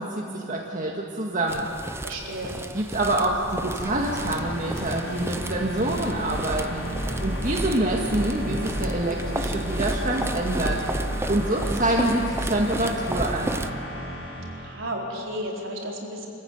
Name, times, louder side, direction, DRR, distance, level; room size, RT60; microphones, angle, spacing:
voice 1, 0.0-1.7 2.7-6.9 7.2-10.8 11.1-13.6, right 1 dB, 40° right, -1 dB, 1.8 m, -26 dB
sound 1, 1.5-13.7, right 1 dB, 15° right, 0.6 m, -34 dB
voice 2, 2.0-2.6 14.6-16.3, equal, 80° right, -2 dB, 4.5 m, -33 dB
sound 2, 2.9-13.7, equal, 15° left, 5.8 m, -34 dB
sound 3, 3.7-14.8, equal, 65° left, 5.9 m, -35 dB
26.5 x 14.5 x 9.4 m, 2.6 s
head